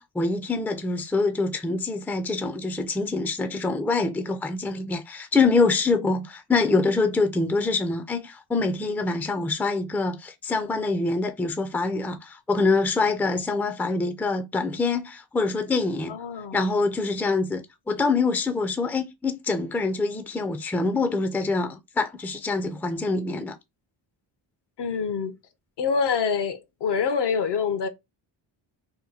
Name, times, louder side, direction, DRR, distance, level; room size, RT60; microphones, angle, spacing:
voice 1, 0.0-16.1 16.5-23.5, left 3 dB, 5° left, 0.4 m, -25 dB
voice 2, 16.1-16.7 24.8-25.3 25.8-27.9, left 6 dB, 60° left, 0.7 m, -26 dB
2.9 x 2.2 x 4.0 m
cardioid pair, 70°, 47 cm